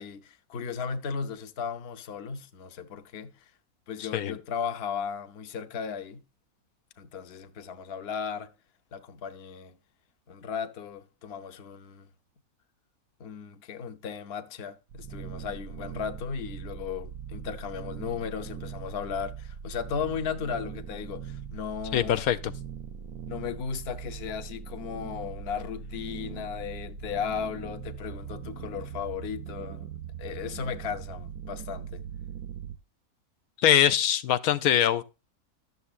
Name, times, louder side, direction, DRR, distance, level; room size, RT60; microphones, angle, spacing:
voice 1, 0.0-3.5 3.9-6.2 7.0-8.5 8.9-9.7 10.3-12.1 13.2-22.2 23.3-29.9 30.2-32.0, left 7 dB, 50° left, 0.9 m, -36 dB
voice 2, 4.0-4.3 21.9-22.5 33.6-35.0, left 10 dB, 85° left, 1.0 m, -23 dB
sound 1, 14.9-32.8, right 7 dB, 90° right, 1.1 m, -40 dB
12.0 x 7.0 x 2.4 m
omnidirectional pair, 1.5 m